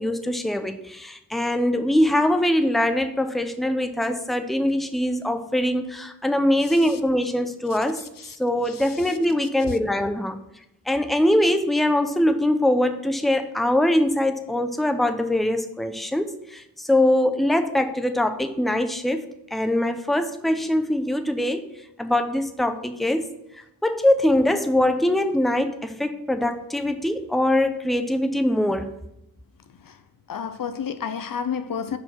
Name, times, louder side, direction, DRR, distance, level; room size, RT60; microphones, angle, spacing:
voice 1, 0.0-8.0 8.4-10.4 10.9-19.2 19.5-21.7 22.0-23.4 23.8-29.0, left 1 dB, ahead, 0.7 m, -22 dB
voice 2, 8.0-8.4 8.7-8.8 9.6-9.7 29.8-30.0 30.3-32.0, left 7 dB, 60° left, 0.6 m, -31 dB
5.8 x 4.8 x 5.9 m
wide cardioid pair, 80°, 37 cm